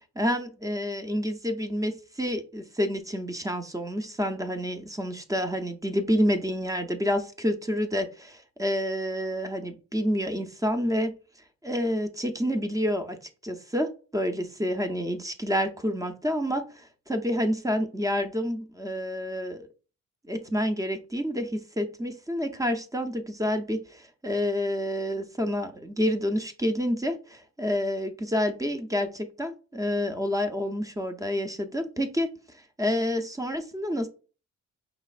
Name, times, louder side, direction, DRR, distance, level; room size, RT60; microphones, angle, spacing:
voice 1, 0.2-11.1 11.6-13.2 13.4-19.7 20.3-34.1, equal, 10° right, 8 dB, 0.6 m, -28 dB
5.1 x 3.0 x 2.4 m, 0.35 s
cardioid pair, 90°, 30 cm